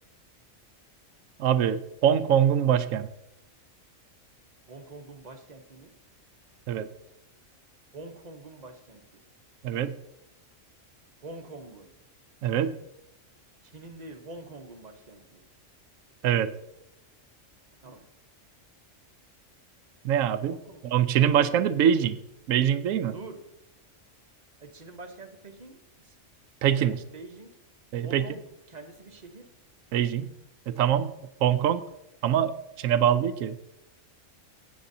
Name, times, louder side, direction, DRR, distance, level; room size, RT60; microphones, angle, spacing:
voice 1, 1.4-3.1 6.7-6.9 9.6-10.0 12.4-12.7 16.2-16.5 20.0-20.6 20.8-22.2 22.5-23.1 26.6-27.0 27.9-28.2 29.9-30.3 30.7-31.1 31.4-31.8 32.2-33.6, right 9 dB, 85° right, 12 dB, 1.0 m, -24 dB
voice 2, 4.7-5.9 7.9-9.2 11.2-11.9 13.7-15.4 17.8-18.0 20.5-20.8 23.1-23.4 24.6-26.2 26.7-27.5 28.0-28.4 28.7-29.5, right 2 dB, 35° right, 5 dB, 1.0 m, -45 dB
17.0 x 7.5 x 2.7 m, 0.84 s
omnidirectional pair, 1.4 m